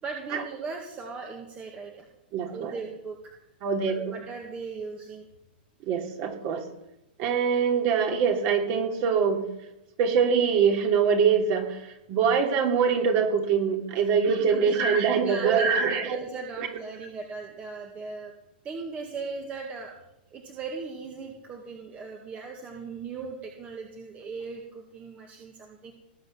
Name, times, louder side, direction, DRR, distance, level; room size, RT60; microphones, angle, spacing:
voice 1, 0.0-2.1 2.5-3.2 3.9-5.3 14.4-14.8 15.2-18.3 18.6-20.0 20.3-25.9, right 4 dB, 20° right, 2 dB, 2.0 m, -38 dB
voice 2, 2.3-2.7 3.6-4.1 5.9-6.6 7.2-9.4 10.0-16.2 16.6-16.7, right 6 dB, 40° right, 3 dB, 3.0 m, -24 dB
18.5 x 7.8 x 7.8 m, 0.86 s
hypercardioid pair, 145°, 6 cm